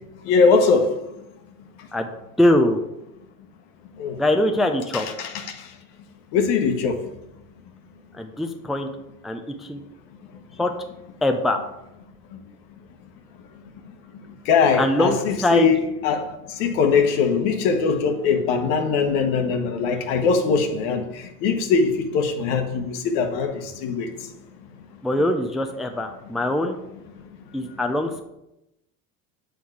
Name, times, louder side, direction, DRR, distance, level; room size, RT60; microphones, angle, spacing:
voice 1, 0.3-1.0 4.0-4.2 4.9-5.5 6.3-7.0 14.5-16.3 16.6-21.0 21.4-23.5 23.8-24.1, left 5 dB, 65° left, 5 dB, 1.1 m, -21 dB
voice 2, 2.4-2.8 4.2-5.1 8.2-8.9 9.2-9.8 10.6-10.7 11.2-11.6 14.8-15.7 25.0-26.8 27.5-28.2, left 1 dB, ahead, 5 dB, 0.5 m, -22 dB
6.8 x 3.9 x 4.8 m, 0.88 s
hypercardioid pair, 80°, 43 cm